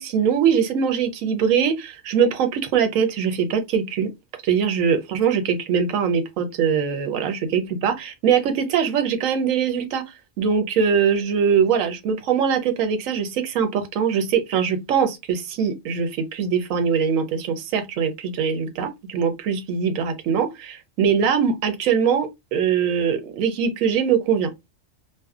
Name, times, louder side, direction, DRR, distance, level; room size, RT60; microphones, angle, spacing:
voice 1, 0.0-4.1 4.4-10.0 10.4-24.5, right 7 dB, 85° right, 1.0 m, -22 dB
2.6 x 2.1 x 2.3 m
omnidirectional pair, 1.3 m